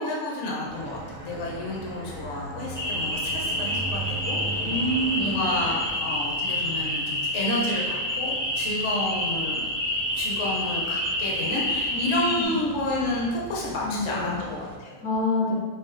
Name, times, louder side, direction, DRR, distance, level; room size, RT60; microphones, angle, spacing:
voice 1, 0.0-4.4 5.1-9.7 10.1-14.9, left 1 dB, 55° left, -3 dB, 0.9 m, -30 dB
sound 1, 0.6-14.8, right 4 dB, 75° right, 1.1 m, -41 dB
sound 2, 0.7-5.9, right 1 dB, 55° right, 0.6 m, -41 dB
sound 3, 2.7-12.4, left 1 dB, 30° left, 0.3 m, -28 dB
voice 2, 4.6-5.3 11.9-12.5 13.8-14.4 15.0-15.5, left 1 dB, 85° left, -5 dB, 1.8 m, -27 dB
6.1 x 2.3 x 2.6 m, 1.4 s
omnidirectional pair, 1.8 m